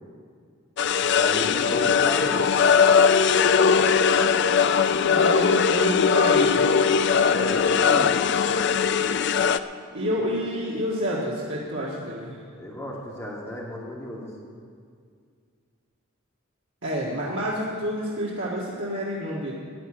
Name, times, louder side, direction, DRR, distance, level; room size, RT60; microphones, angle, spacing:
sound 1, 0.8-9.6, left 6 dB, 55° left, 0.4 m, -20 dB
voice 1, 1.1-2.6 7.3-8.2 10.2-10.3 12.5-14.3, left 1 dB, 15° left, -4 dB, 2.2 m, -33 dB
voice 2, 5.1-6.7 9.9-12.4 16.8-19.5, equal, 60° right, -5 dB, 1.7 m, -29 dB
11.0 x 9.4 x 8.7 m, 2.2 s
head